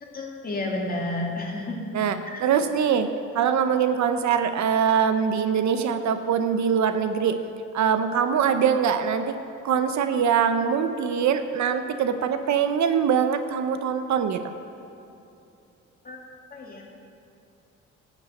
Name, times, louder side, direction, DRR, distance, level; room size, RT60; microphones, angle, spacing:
voice 1, 0.0-1.7 2.3-2.4 16.1-16.2 16.5-16.8, left 2 dB, 30° left, -2 dB, 2.7 m, -31 dB
voice 2, 1.9-3.1 3.3-7.4 7.7-9.3 9.6-14.4, right 7 dB, 65° right, 9 dB, 0.8 m, -23 dB
12.0 x 7.4 x 7.8 m, 2.8 s
cardioid pair, 90°, 30 cm